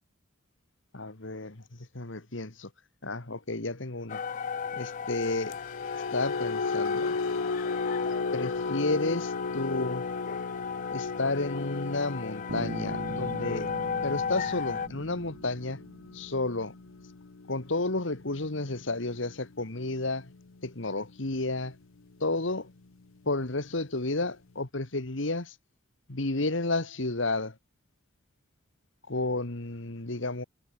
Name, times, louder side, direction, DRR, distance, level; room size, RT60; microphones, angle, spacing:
voice 1, 0.9-1.6 1.9-2.7 3.0-4.2 4.7-5.6 6.1-7.2 8.3-10.1 10.9-13.7 14.0-15.8 16.1-16.7 17.5-20.3 20.6-21.7 22.2-22.7 23.3-25.5 26.1-27.5 29.1-30.4, left 2 dB, 70° left, 1.9 m, -31 dB
sound 1, 4.1-14.9, left 6 dB, 40° left, 0.3 m, -35 dB
sound 2, 5.3-21.7 22.0-22.3 22.7-22.9, left 3 dB, 90° left, 0.9 m, -37 dB
Bass guitar, 12.5-16.3, right 1 dB, 60° right, 1.3 m, -40 dB
head